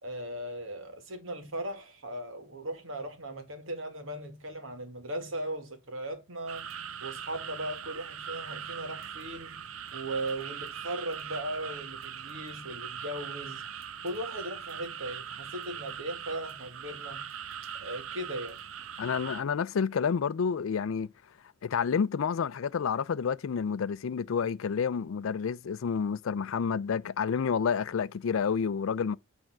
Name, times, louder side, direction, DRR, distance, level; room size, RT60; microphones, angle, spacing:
voice 1, 0.0-6.7 7.0-9.6 9.9-13.7 14.0-17.3 17.8-18.6, right 1 dB, 70° right, 2.0 m, -38 dB
sound 1, 6.5-19.4, right 8 dB, 90° right, 0.6 m, -41 dB
voice 2, 19.0-21.1 21.6-29.2, left 6 dB, 75° left, 0.4 m, -29 dB
8.9 x 3.5 x 6.0 m
head